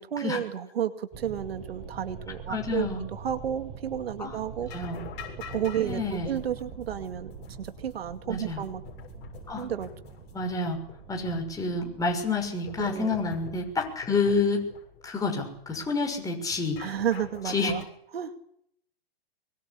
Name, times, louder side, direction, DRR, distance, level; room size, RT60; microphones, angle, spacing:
voice 1, 0.0-4.7 5.4-8.8 9.5-9.9 12.8-13.2 16.8-17.8 18.1-18.3, right 9 dB, 75° right, 9 dB, 2.4 m, -32 dB
sound 1, 1.1-12.5, right 7 dB, 35° right, 7.6 m, -44 dB
voice 2, 2.5-3.0 4.2-4.4 4.7-5.0 5.8-6.3 8.3-8.6 9.5-9.6 10.3-10.8 11.1-14.7 15.0-16.8 17.5-17.7, left 3 dB, 10° left, 2 dB, 6.2 m, -28 dB
sound 2, 4.7-17.8, left 8 dB, 35° left, 7.3 m, -46 dB
23.5 x 23.5 x 8.6 m, 0.72 s
hypercardioid pair, 130°, 31 cm